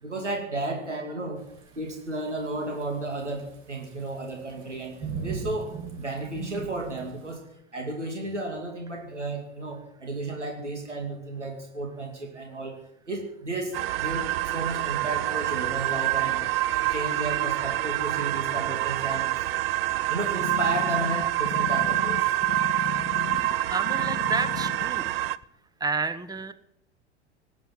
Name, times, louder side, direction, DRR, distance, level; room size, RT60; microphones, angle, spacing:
voice 1, 0.0-1.4 1.8-4.9 5.2-7.4 7.7-12.8 13.1-16.4 16.9-19.3 20.1-22.2, right 2 dB, 90° right, 2 dB, 2.9 m, -33 dB
Thunderstorm / Rain, 1.4-7.3, right 5 dB, 35° right, 4.7 m, -40 dB
sound 1, 13.7-25.4, right 16 dB, 55° right, 0.7 m, -27 dB
sound 2, 20.4-23.5 23.9-24.9 25.4-25.5, left 12 dB, 30° left, 1.0 m, -35 dB
voice 2, 23.7-25.1 25.8-26.5, right 4 dB, 10° right, 15 dB, 1.1 m, -30 dB
18.5 x 9.2 x 7.5 m, 0.75 s
figure-of-eight pair, 90°, 35 cm